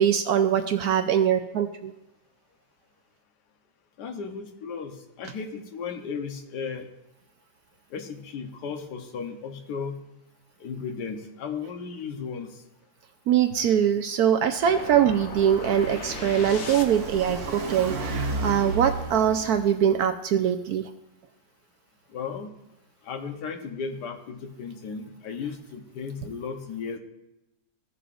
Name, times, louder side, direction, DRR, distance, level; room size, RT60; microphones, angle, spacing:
voice 1, 0.0-1.9 13.3-20.9, right 9 dB, 70° right, 8 dB, 1.0 m, -23 dB
voice 2, 4.0-6.9 7.9-10.0 10.6-12.6 13.5-13.6 22.1-22.5 23.0-27.0, left 5 dB, 70° left, 4 dB, 1.5 m, -35 dB
Car passing by, 14.5-20.0, right 2 dB, 50° right, 1.6 m, -34 dB
sound 1, 14.6-17.3, left 5 dB, 50° left, 0.9 m, -38 dB
15.5 x 6.9 x 2.5 m, 0.93 s
omnidirectional pair, 1.9 m